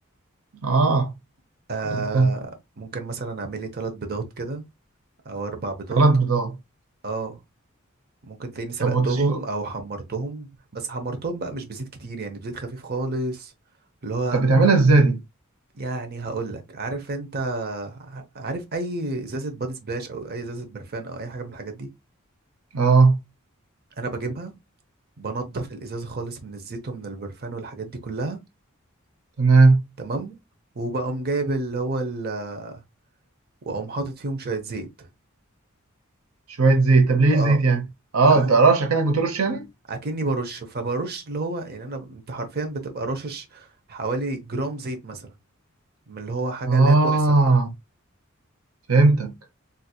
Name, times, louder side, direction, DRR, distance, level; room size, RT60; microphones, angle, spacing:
voice 1, 0.6-1.1 1.9-2.3 5.9-6.5 8.8-9.4 14.3-15.2 22.7-23.2 29.4-29.8 36.6-37.8 38.1-39.7 46.7-47.7 48.9-49.3, right 3 dB, 90° right, 0.8 m, -17 dB
voice 2, 1.7-2.5 2.8-4.6 5.2-6.0 7.0-7.4 8.2-13.5 14.0-14.4 15.7-21.9 24.0-24.5 25.2-28.4 30.0-30.4 30.7-32.8 33.7-35.1 37.3-37.6 38.3-38.5 39.9-45.3 46.1-47.3, right 3 dB, 50° right, 0.8 m, -30 dB
3.9 x 2.8 x 2.2 m
head